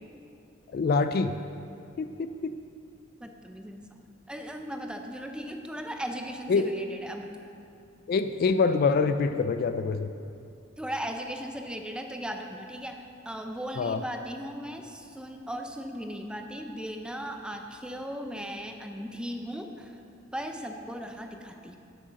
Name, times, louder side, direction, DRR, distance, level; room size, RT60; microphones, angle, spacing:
voice 1, 0.7-1.3 2.0-2.5 6.5-6.7 8.1-10.1 13.8-14.0, left 4 dB, 50° left, 10 dB, 0.3 m, -25 dB
voice 2, 3.2-4.0 4.3-7.3 10.8-20.0 20.3-21.8, equal, 5° right, 4 dB, 0.5 m, -37 dB
7.8 x 6.4 x 6.3 m, 2.6 s
head